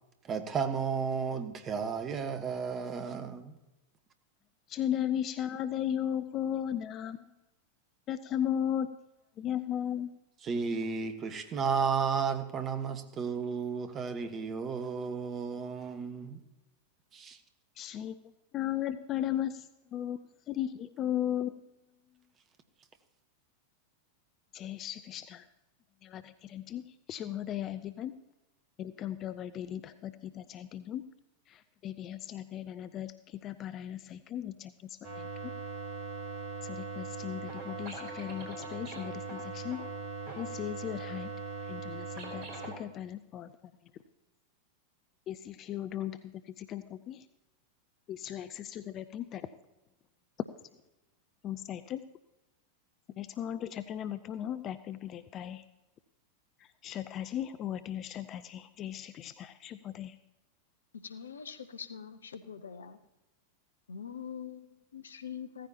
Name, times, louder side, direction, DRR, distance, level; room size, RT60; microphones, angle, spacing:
voice 1, 0.3-3.5 10.4-16.4 17.1-17.4, right 6 dB, 25° right, 1.3 m, -33 dB
voice 2, 4.7-7.3 8.1-8.9 9.4-10.1 17.8-18.2 18.5-21.6 24.5-25.5 26.0-28.1 28.8-31.0 31.5-35.5 36.6-39.8 40.4-41.3 41.6-43.5 45.3-47.2 48.1-49.5 51.4-52.0 53.2-55.6 56.8-60.2, left 10 dB, 30° left, 0.5 m, -36 dB
sound 1, 35.0-42.7, right 4 dB, 45° right, 4.0 m, -40 dB
voice 3, 61.0-63.0 63.9-65.7, left 7 dB, 70° left, 0.9 m, -43 dB
16.0 x 14.0 x 2.9 m
figure-of-eight pair, 90°, 0 cm